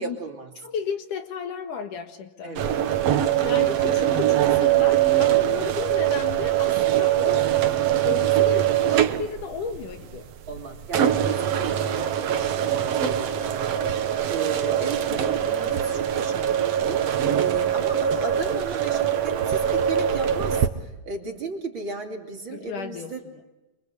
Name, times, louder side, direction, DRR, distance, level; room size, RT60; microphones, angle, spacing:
voice 1, 0.0-0.5 2.4-2.8 3.1-3.3 3.7-4.2 5.3-5.8 10.5-23.2, right 4 dB, 35° right, 2 dB, 3.3 m, -35 dB
voice 2, 0.6-2.6 3.4-7.7 8.0-10.3 12.7-12.9 22.5-23.4, left 6 dB, 65° left, 6 dB, 3.2 m, -34 dB
sound 1, 2.6-20.7, right 11 dB, 60° right, 1.9 m, -23 dB
27.0 x 25.0 x 8.2 m, 1.1 s
omnidirectional pair, 4.0 m